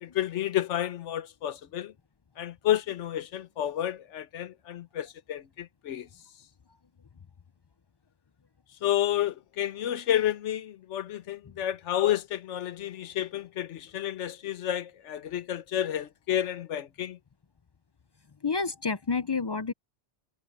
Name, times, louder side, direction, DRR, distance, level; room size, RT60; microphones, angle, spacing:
voice 1, 0.0-1.9 2.4-6.1 8.8-17.2, left 11 dB, 90° left, 1.1 m, -30 dB
voice 2, 18.4-19.7, left 4 dB, 45° left, 0.3 m, -29 dB
omnidirectional pair, 1.2 m